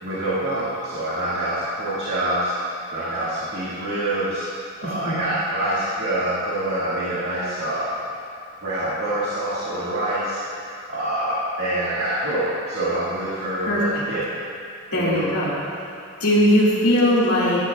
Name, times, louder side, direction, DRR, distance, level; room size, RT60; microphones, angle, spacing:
voice 1, 0.0-2.5 2.9-4.4 4.8-7.9 8.6-14.3 15.0-15.3, right 1 dB, 50° right, -10 dB, 1.9 m, -26 dB
voice 2, 4.8-5.1 13.7-14.0 14.9-15.6 16.2-17.6, equal, 90° left, -7 dB, 2.1 m, -19 dB
14.5 x 11.5 x 2.3 m, 2.5 s
head